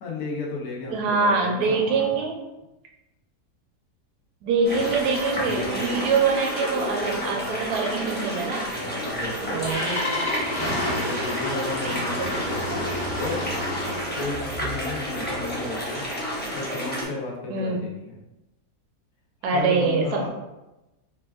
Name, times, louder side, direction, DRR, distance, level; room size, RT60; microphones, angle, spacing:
voice 1, 0.0-2.3 7.3-7.7 9.0-9.7 10.9-12.9 13.2-13.5 14.1-16.1 16.5-18.1 19.4-20.3, left 3 dB, 80° left, -2 dB, 1.2 m, -34 dB
voice 2, 0.9-2.4 4.4-8.7 9.5-10.3 11.8-12.3 17.5-17.8 19.4-20.3, right 4 dB, 75° right, 1 dB, 1.1 m, -24 dB
sound 1, 4.5-11.5, left 2 dB, 60° left, 0.8 m, -40 dB
sound 2, 4.6-17.0, equal, 10° left, 0.5 m, -30 dB
Engine starting, 9.2-14.3, left 1 dB, 40° left, 1.2 m, -29 dB
4.3 x 2.3 x 2.3 m, 0.98 s
omnidirectional pair, 1.7 m